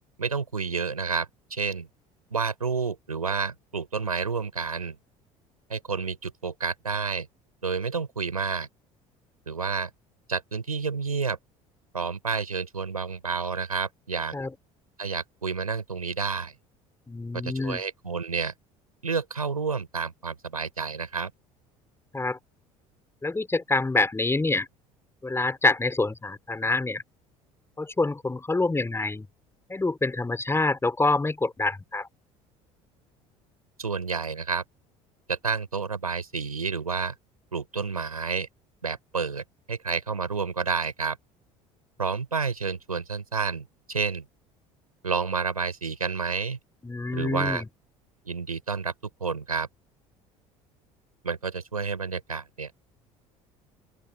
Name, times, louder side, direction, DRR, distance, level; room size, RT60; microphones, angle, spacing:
voice 1, 0.2-1.9 2.3-5.0 5.7-7.3 7.6-8.7 9.5-9.9 10.3-11.4 11.9-14.4 15.0-16.5 17.3-18.5 19.0-21.3 33.8-34.6 35.3-37.1 37.5-38.5 38.8-41.2 42.0-44.3 45.0-46.6 47.1-47.6 48.2-48.9 49.2-49.7 51.2-52.7, right 5 dB, 80° right, 5.8 m, -30 dB
voice 2, 17.1-17.8 22.1-22.4 23.2-24.7 25.2-27.0 27.8-29.3 29.7-32.1 46.8-47.7, left 3 dB, 15° left, 4.3 m, -26 dB
open air
figure-of-eight pair, 60°, 18 cm